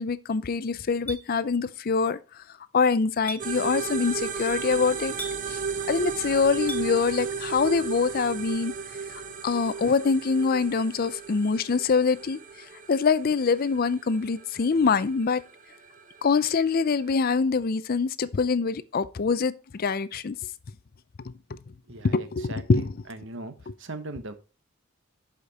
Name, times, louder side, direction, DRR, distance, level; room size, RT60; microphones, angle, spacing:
voice 1, 0.0-2.2 2.7-5.1 5.5-5.6 5.9-8.7 9.4-12.4 12.9-15.4 16.2-20.4 22.0-22.9, left 5 dB, 45° left, 0.5 m, -24 dB
Chink clink, 1.1-1.2 3.3-3.4 5.2-5.4 6.7-6.8, equal, 10° left, 1.3 m, -35 dB
sound 1, 3.4-17.1, right 5 dB, 40° right, 0.9 m, -35 dB
voice 2, 21.9-23.5 23.8-24.3, right 2 dB, 60° right, 1.1 m, -39 dB
11.5 x 5.1 x 4.1 m
head